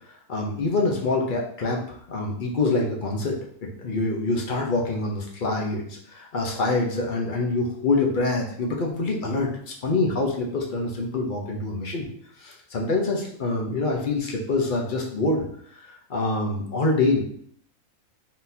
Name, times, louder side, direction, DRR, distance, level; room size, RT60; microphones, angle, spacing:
voice 1, 0.3-3.3 3.6-9.5 9.8-12.1 12.4-15.4 15.9-17.2, left 3 dB, 45° left, 0 dB, 0.8 m, -25 dB
4.2 x 3.8 x 2.7 m, 0.64 s
omnidirectional pair, 1.4 m